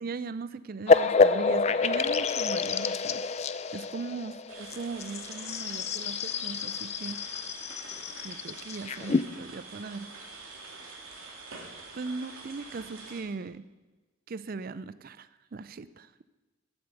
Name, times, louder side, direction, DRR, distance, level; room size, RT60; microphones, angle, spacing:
voice 1, 0.0-3.2 3.7-7.2 8.2-10.1 11.9-13.7 14.3-16.1, right 4 dB, 45° right, 15 dB, 0.4 m, -39 dB
sound 1, 0.9-9.2, left 4 dB, 30° left, 0.3 m, -27 dB
sound 2, 4.5-13.2, right 3 dB, 85° right, 2.4 m, -46 dB
11.5 x 7.9 x 6.9 m, 1.2 s
head